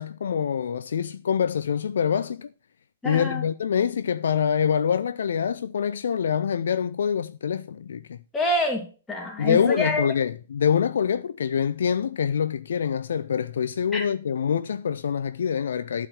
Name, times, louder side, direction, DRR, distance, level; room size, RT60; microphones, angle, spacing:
voice 1, 0.0-2.5 3.0-8.2 9.4-16.1, left 7 dB, 60° left, 0.5 m, -25 dB
voice 2, 3.0-3.4 8.3-10.1 13.9-14.1, left 1 dB, 10° left, 2.7 m, -27 dB
11.5 x 5.0 x 7.9 m
figure-of-eight pair, 115°, 0 cm